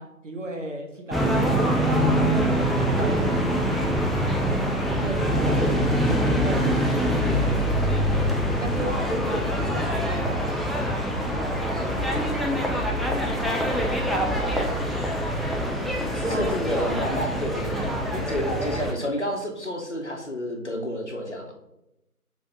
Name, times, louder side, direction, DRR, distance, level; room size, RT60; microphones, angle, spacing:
voice 1, 0.0-1.8 2.1-3.5 4.9-5.7 6.0-6.7 7.3-7.7 8.3-10.8 11.2-12.2 12.5-12.9 13.5-14.5 16.2-16.5 18.1-18.3, right 1 dB, 55° right, 3 dB, 0.8 m, -35 dB
sound 1, 1.1-18.9, equal, ahead, 0.4 m, -24 dB
voice 2, 5.1-5.8 16.0-21.5, equal, 50° left, 1 dB, 0.8 m, -30 dB
3.4 x 3.4 x 3.9 m, 0.88 s
figure-of-eight pair, 175°, 44 cm